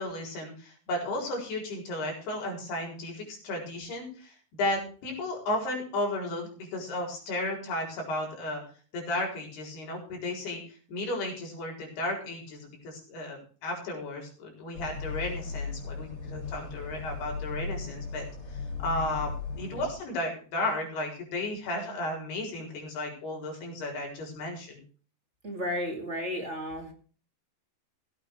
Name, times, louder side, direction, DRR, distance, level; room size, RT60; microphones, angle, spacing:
voice 1, 0.0-8.6 8.9-24.8, left 1 dB, 90° left, 1 dB, 6.4 m, -34 dB
sound 1, 14.7-19.9, left 4 dB, 35° left, 3.1 m, -37 dB
voice 2, 25.4-26.9, equal, 25° right, 2 dB, 2.0 m, -33 dB
16.5 x 8.9 x 4.7 m, 0.40 s
omnidirectional pair, 4.5 m